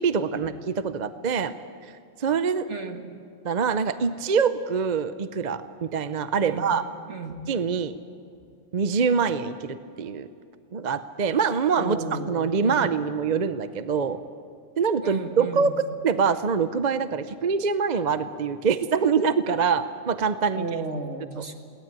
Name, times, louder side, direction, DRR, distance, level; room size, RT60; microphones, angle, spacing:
voice 1, 0.0-1.5 1.8-1.9 2.2-2.7 3.4-6.8 7.5-8.0 8.7-10.3 10.7-14.2 14.8-15.7 16.0-20.7, right 6 dB, 40° right, 12 dB, 0.7 m, -24 dB
voice 2, 2.7-3.0 6.4-6.7 7.1-7.4 11.8-12.3 12.6-12.9 15.0-15.8 20.5-21.5, right 3 dB, 60° right, 5 dB, 2.2 m, -33 dB
23.0 x 18.0 x 8.9 m, 2.4 s
omnidirectional pair, 1.3 m